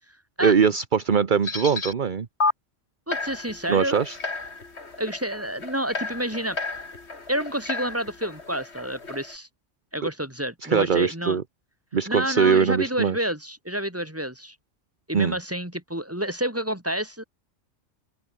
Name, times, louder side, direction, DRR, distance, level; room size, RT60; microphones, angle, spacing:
voice 1, 0.4-2.3 3.7-4.2 10.6-11.4 11.9-13.2 15.1-15.4, right 6 dB, 40° right, 1.1 m, -21 dB
sound 1, 1.4-1.9 2.4-2.5 3.1-9.3, left 3 dB, 55° left, 3.0 m, -32 dB
voice 2, 3.1-4.0 5.0-6.6 7.3-9.5 9.9-11.4 12.1-14.5 15.1-17.2, right 1 dB, 10° right, 4.5 m, -29 dB
open air
omnidirectional pair, 1.3 m